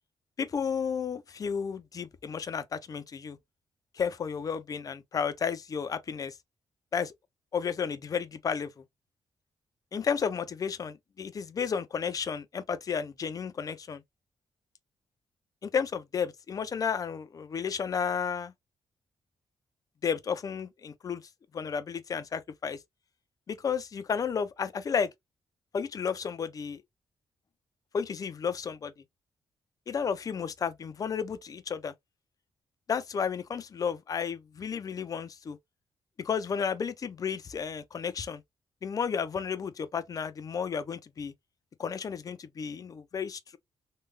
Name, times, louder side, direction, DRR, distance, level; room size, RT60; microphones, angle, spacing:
voice 1, 0.4-3.4 4.0-6.3 6.9-7.1 7.5-8.7 9.9-14.0 15.6-18.5 20.0-21.2 21.5-22.8 23.5-25.1 25.7-26.8 27.9-28.9 29.9-31.9 32.9-35.6 36.2-38.4 38.8-41.3 41.8-43.6, left 6 dB, 40° left, 0.5 m, -32 dB
3.2 x 2.3 x 3.1 m
cardioid pair, 130°, 9 cm